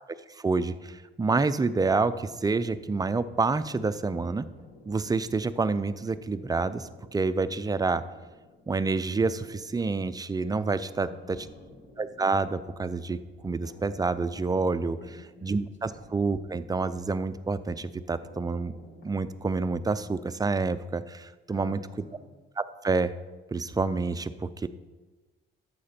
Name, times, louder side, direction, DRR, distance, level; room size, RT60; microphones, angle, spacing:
voice 1, 0.4-4.5 4.9-8.0 8.7-11.4 12.0-15.0 15.4-18.7 19.0-21.8 22.6-23.1 23.5-24.7, right 3 dB, 20° right, 12 dB, 0.4 m, -28 dB
sound 1, 2.3-20.4, left 1 dB, 50° left, 1.8 m, -55 dB
voice 2, 11.0-11.8 15.0-15.5 15.8-16.0 21.5-22.3, left 6 dB, 70° left, 3 dB, 2.0 m, -50 dB
11.5 x 7.7 x 4.3 m, 1.3 s
cardioid pair, 90°, 20 cm